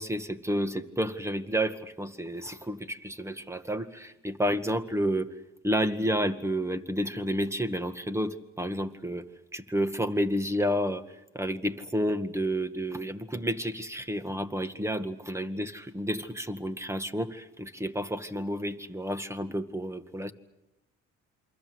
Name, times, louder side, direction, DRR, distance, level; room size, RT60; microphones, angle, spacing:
voice 1, 0.0-5.3 5.6-20.3, equal, 10° right, 10 dB, 2.0 m, -30 dB
28.0 x 24.0 x 8.0 m, 0.92 s
cardioid pair, 90°, 30 cm